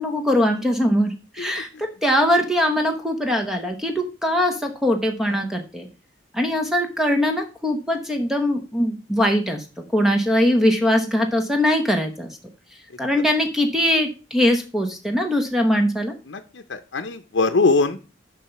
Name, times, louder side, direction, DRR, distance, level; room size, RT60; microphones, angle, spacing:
voice 1, 0.0-5.9 6.3-9.6 9.9-12.4 13.0-16.1, equal, ahead, 4 dB, 0.9 m, -21 dB
voice 2, 1.4-1.8 5.3-5.4 16.3-18.0, left 3 dB, 75° left, 7 dB, 0.7 m, -23 dB
7.2 x 5.4 x 5.8 m, 0.33 s
head